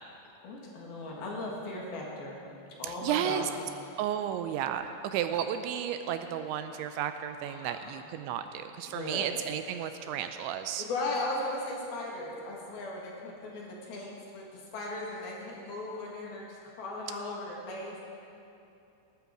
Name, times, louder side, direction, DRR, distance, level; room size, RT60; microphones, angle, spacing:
voice 1, 0.4-2.4 2.8-3.5 7.4-8.1 8.9-9.3 9.8-10.3 10.8-18.0, left 2 dB, 60° left, -2 dB, 3.3 m, -37 dB
voice 2, 2.8-3.5 4.0-10.8, right 10 dB, 85° right, 8 dB, 2.8 m, -33 dB
19.0 x 12.0 x 4.7 m, 2.7 s
omnidirectional pair, 5.4 m